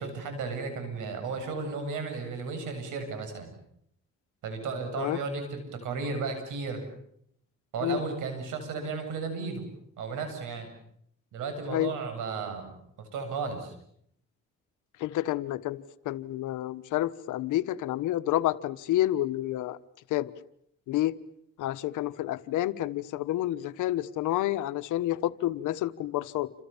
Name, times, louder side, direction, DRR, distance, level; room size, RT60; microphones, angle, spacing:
voice 1, 0.0-3.5 4.4-6.8 7.7-9.7 10.0-10.7 11.3-12.7 13.0-13.7, right 4 dB, 90° right, 7 dB, 8.0 m, -34 dB
voice 2, 15.0-19.8 20.1-20.3 20.9-21.2 21.6-26.5, left 14 dB, 90° left, 13 dB, 1.2 m, -29 dB
29.0 x 26.5 x 7.2 m, 0.71 s
cardioid pair, 90°, 30 cm